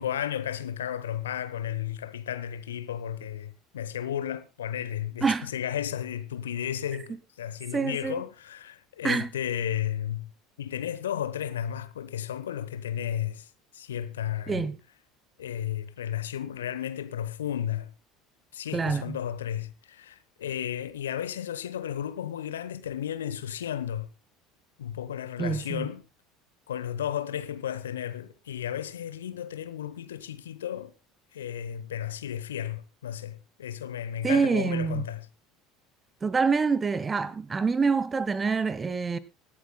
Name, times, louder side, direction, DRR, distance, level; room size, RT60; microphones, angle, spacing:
voice 1, 0.0-10.3 10.6-13.5 13.7-14.6 15.4-17.9 18.5-24.1 24.8-26.0 26.7-30.9 31.3-35.3, left 10 dB, 75° left, 0.9 m, -33 dB
voice 2, 7.7-8.2 9.0-9.3 14.5-14.8 18.7-19.2 25.4-25.9 34.2-35.1 36.2-39.2, right 5 dB, 25° right, 1.0 m, -26 dB
24.5 x 11.5 x 2.2 m
figure-of-eight pair, 65°, 0 cm